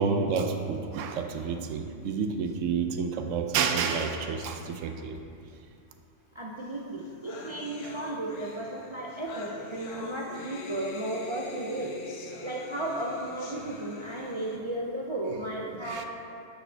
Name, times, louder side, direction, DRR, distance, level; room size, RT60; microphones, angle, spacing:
voice 1, 0.0-5.2 15.8-16.1, right 5 dB, 85° right, 6 dB, 1.0 m, -29 dB
voice 2, 6.3-11.9 12.4-16.0, right 1 dB, 50° right, -3 dB, 0.3 m, -34 dB
sound 1, 6.7-6.8 7.0-14.6, left 3 dB, 80° left, 1.1 m, -44 dB
9.7 x 5.1 x 3.3 m, 2.6 s
omnidirectional pair, 1.3 m